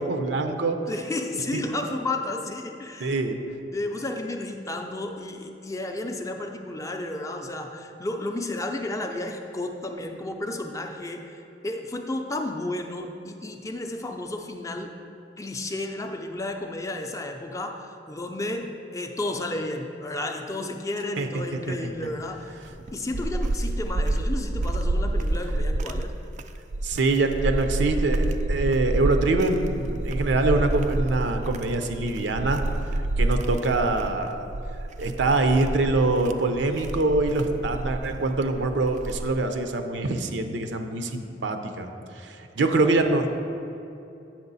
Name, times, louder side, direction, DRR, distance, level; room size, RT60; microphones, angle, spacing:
voice 1, 0.0-0.8 1.5-1.7 3.0-3.4 21.2-21.9 26.8-32.6 33.2-34.5 35.0-41.9 42.2-43.3, right 2 dB, 80° right, 6 dB, 0.6 m, -24 dB
voice 2, 0.9-3.1 3.7-14.9 15.4-22.5 22.9-26.1, left 2 dB, 20° left, 4 dB, 0.5 m, -32 dB
sound 1, 22.7-39.5, right 1 dB, 40° right, 0.3 m, -28 dB
8.6 x 6.3 x 4.0 m, 2.8 s
head